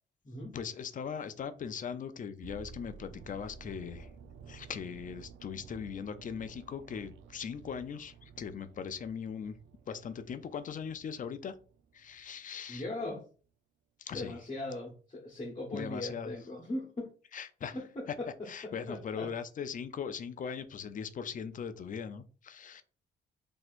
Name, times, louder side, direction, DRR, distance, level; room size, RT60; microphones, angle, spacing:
voice 1, 0.5-4.1 4.5-9.6 9.9-11.5 11.9-12.8 14.0-14.4 15.7-16.4 17.3-17.8 18.5-22.8, left 7 dB, 40° left, 0.5 m, -40 dB
sound 1, 2.4-12.4 12.7-12.9, right 6 dB, 75° right, 0.5 m, -53 dB
voice 2, 12.7-13.2 14.1-17.1 17.7-18.3 18.6-19.3, left 2 dB, 25° left, 1.0 m, -39 dB
4.2 x 2.8 x 2.5 m
cardioid pair, 90°, 20 cm